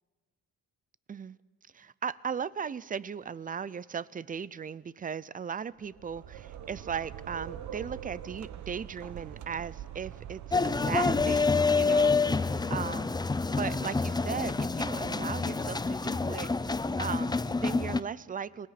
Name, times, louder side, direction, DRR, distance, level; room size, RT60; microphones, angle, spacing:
voice 1, 1.7-12.4 12.7-13.1 13.6-16.5 17.0-18.7, right 7 dB, 30° right, 0.5 m, -37 dB
sound 1, 5.8-11.9, right 10 dB, 70° right, 1.1 m, -44 dB
sound 2, 10.5-18.0, left 4 dB, 15° left, 0.6 m, -27 dB
26.0 x 19.5 x 5.9 m
cardioid pair, 90°, 30 cm